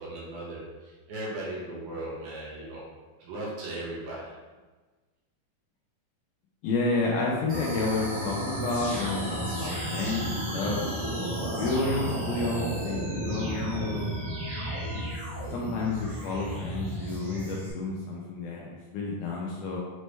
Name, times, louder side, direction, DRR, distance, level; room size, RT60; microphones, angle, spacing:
voice 1, 0.0-2.8 3.2-4.3, right 1 dB, 70° right, -5 dB, 2.1 m, -37 dB
voice 2, 6.6-10.9 11.6-14.1 15.5-19.8, left 3 dB, 85° left, -3 dB, 1.9 m, -30 dB
sound 1, 7.5-17.7, right 1 dB, 55° right, 0.8 m, -33 dB
6.0 x 2.1 x 3.2 m, 1.3 s
omnidirectional pair, 4.1 m